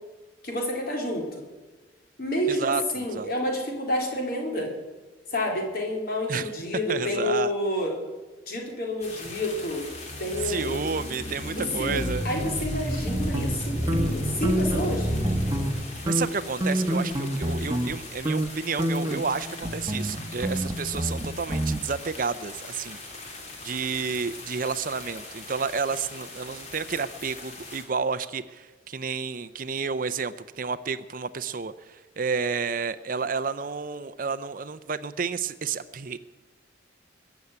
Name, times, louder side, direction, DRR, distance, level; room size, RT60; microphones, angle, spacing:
voice 1, 0.4-1.3 2.2-4.7 5.3-7.9 8.5-9.9 10.2-10.8 11.6-15.1, left 1 dB, 50° left, 0 dB, 4.0 m, -29 dB
voice 2, 2.5-3.3 6.3-6.5 6.9-7.5 10.4-12.6 16.0-23.0 23.6-36.2, right 5 dB, 45° right, 14 dB, 0.6 m, -31 dB
sound 1, 9.0-27.9, left 2 dB, 35° left, 2.9 m, -42 dB
sound 2, 9.9-16.3, equal, ahead, 2.8 m, -30 dB
sound 3, 13.1-14.9 15.2-15.8 16.1-18.0 18.3-18.5 18.8-21.8, right 1 dB, 20° right, 1.1 m, -28 dB
21.5 x 7.1 x 9.5 m, 1.3 s
head